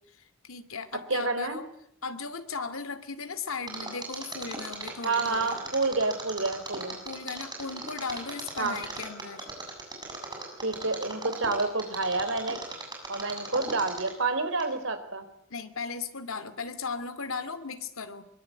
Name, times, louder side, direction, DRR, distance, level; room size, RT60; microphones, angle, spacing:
voice 1, 0.4-1.7 2.0-5.6 7.0-9.5 15.5-18.2, left 4 dB, 90° left, 11 dB, 2.5 m, -36 dB
voice 2, 1.1-1.6 5.0-7.0 8.6-8.8 10.6-12.6 13.1-15.3, right 3 dB, 70° right, 9 dB, 3.9 m, -29 dB
Mechanisms, 3.7-14.3 14.6-14.7, right 3 dB, 20° right, 7.4 m, -38 dB
23.5 x 23.0 x 9.4 m, 0.70 s
head